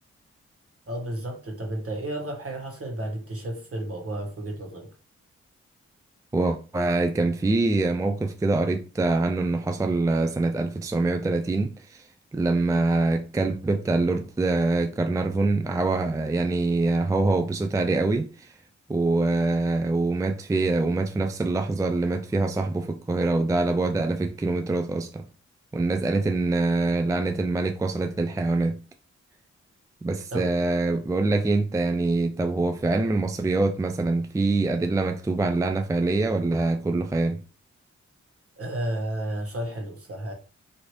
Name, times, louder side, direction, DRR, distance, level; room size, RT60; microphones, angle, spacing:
voice 1, 0.9-4.9 30.3-30.5 38.5-40.3, right 1 dB, 50° right, 1.3 m, -32 dB
voice 2, 6.3-18.5 18.9-25.2 25.7-28.8 30.0-37.4, right 2 dB, 10° right, 0.4 m, -24 dB
3.0 x 2.7 x 2.9 m
supercardioid pair, 40°, 30 cm